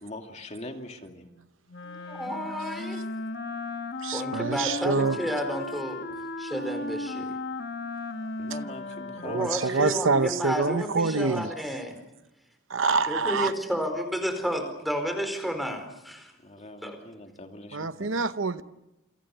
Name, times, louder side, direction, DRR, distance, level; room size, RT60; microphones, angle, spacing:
voice 1, 0.0-1.3 8.4-10.1 16.4-18.2, left 1 dB, 35° left, 2.5 m, -42 dB
Wind instrument woodwind instrument, 1.7-10.2, left 2 dB, 55° left, 1.6 m, -36 dB
voice 2, 2.0-3.0 4.1-6.1 6.4-7.4 9.2-12.0 13.1-16.3 16.8-17.0, equal, ahead, 4.6 m, -31 dB
voice 3, 4.0-5.2 9.2-11.5 12.7-13.5 17.7-18.6, right 4 dB, 70° right, 0.9 m, -26 dB
28.5 x 27.5 x 6.8 m
head